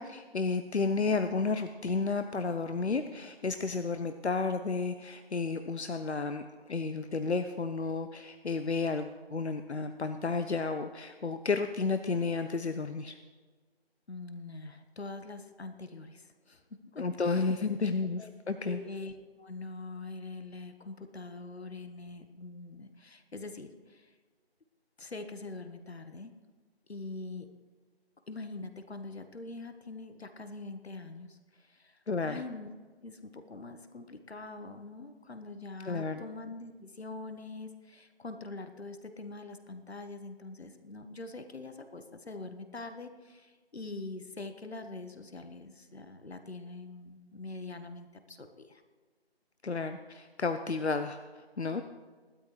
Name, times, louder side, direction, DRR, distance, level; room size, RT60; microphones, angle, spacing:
voice 1, 0.0-13.2 17.0-18.8 32.1-32.4 35.8-36.2 49.6-51.8, left 4 dB, 90° left, 8 dB, 0.9 m, -32 dB
voice 2, 14.1-17.6 18.2-18.3 18.6-24.1 25.0-26.3 26.9-27.5 28.3-32.7 33.0-48.8, left 3 dB, 75° left, 8 dB, 1.3 m, -44 dB
18.0 x 12.5 x 3.3 m, 1.4 s
figure-of-eight pair, 170°, 32 cm